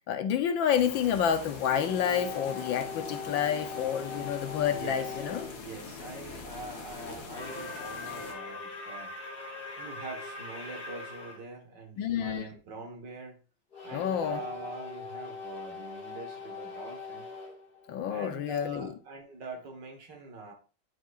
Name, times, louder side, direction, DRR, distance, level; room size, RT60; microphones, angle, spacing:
voice 1, 0.1-5.4 12.0-12.5 13.9-14.4 17.9-18.9, left 8 dB, 75° left, 1.5 m, -29 dB
sound 1, 0.7-8.3, left 4 dB, 55° left, 1.7 m, -43 dB
sound 2, 1.7-5.6 7.2-11.4 13.7-18.6, left 4 dB, 30° left, 2.2 m, -41 dB
voice 2, 4.7-5.2 5.5-9.3 9.8-13.4 13.8-17.3 18.1-20.5, right 3 dB, 65° right, 2.1 m, -44 dB
11.5 x 4.6 x 2.5 m
omnidirectional pair, 2.1 m